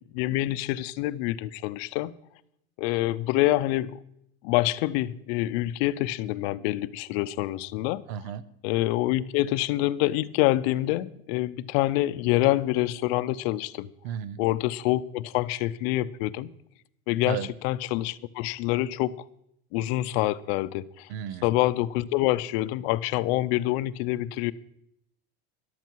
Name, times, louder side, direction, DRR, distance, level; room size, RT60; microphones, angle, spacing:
voice 1, 0.1-2.1 2.8-4.0 4.4-8.0 8.6-13.9 14.4-16.5 17.1-17.4 17.6-19.1 19.7-21.1 21.4-24.5, left 16 dB, 80° left, 0.6 m, -26 dB
voice 2, 8.1-8.4 14.0-14.4 17.3-17.5 21.1-21.5, right 9 dB, 80° right, 0.8 m, -33 dB
13.5 x 11.5 x 4.6 m
cardioid pair, 165°, 31 cm